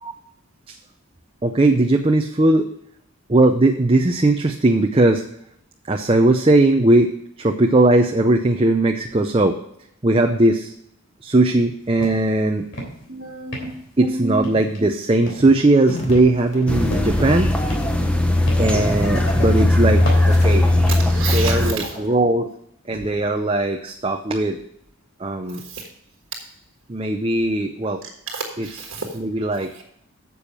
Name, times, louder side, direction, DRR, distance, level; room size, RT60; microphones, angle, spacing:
voice 1, 1.4-2.7 3.3-5.2 5.9-7.1 7.4-9.6 10.0-10.7 11.2-12.7 14.0-17.5 18.6-20.7 21.2-22.5 22.9-24.6 25.2-25.6 26.9-28.0 28.6-28.8 29.1-29.7, right 2 dB, 25° right, 4 dB, 0.5 m, -18 dB
sound 1, 12.0-12.3 12.6-13.1 13.5-14.0 14.4-14.9 15.3-15.6 16.1-17.3 17.7-18.9 19.3-19.6 20.0-21.2, equal, 55° left, 3.2 m, -34 dB
voice 2, 13.1-13.7 14.0-14.1 20.9-21.9 25.6-25.8 28.3-29.1, right 4 dB, 60° right, 1 dB, 1.5 m, -30 dB
sound 2, 15.9-17.4 18.4-22.1 22.9-23.1, left 1 dB, 30° left, 1.8 m, -33 dB
sound 3, 16.7-21.7, left 1 dB, 5° left, 0.8 m, -18 dB
9.1 x 7.0 x 5.7 m, 0.74 s
head